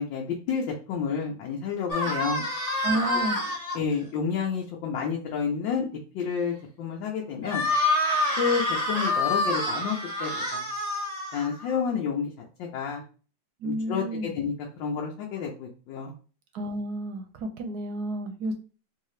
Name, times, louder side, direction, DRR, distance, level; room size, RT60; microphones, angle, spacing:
voice 1, 0.0-2.4 3.7-5.9 6.1-7.6 8.4-10.6 11.3-12.3 12.6-13.0 13.6-14.5 14.8-16.1, left 6 dB, 80° left, -1 dB, 1.4 m, -30 dB
sound 1, 1.9-3.8 7.4-11.8, left 1 dB, 30° left, 0.8 m, -27 dB
voice 2, 2.8-3.4 13.6-14.3 16.5-18.5, right 1 dB, 70° right, 6 dB, 1.0 m, -31 dB
4.0 x 2.7 x 3.1 m, 0.38 s
omnidirectional pair, 2.0 m